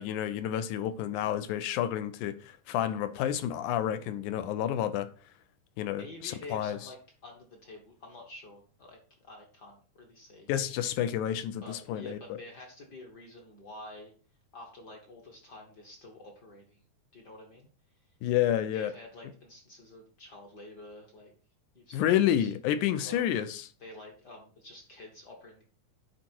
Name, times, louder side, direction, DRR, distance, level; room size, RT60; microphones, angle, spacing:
voice 1, 0.0-5.1 5.8-6.8 10.5-12.4 18.2-18.9 21.9-23.6, left 11 dB, 80° left, 2.0 m, -30 dB
voice 2, 5.9-7.0 7.2-10.5 11.6-14.1 14.5-16.8 17.1-17.7 18.7-21.3 21.7-22.5 23.0-23.4 23.8-25.6, left 2 dB, 50° left, 1.3 m, -48 dB
10.5 x 4.3 x 4.5 m
omnidirectional pair, 3.7 m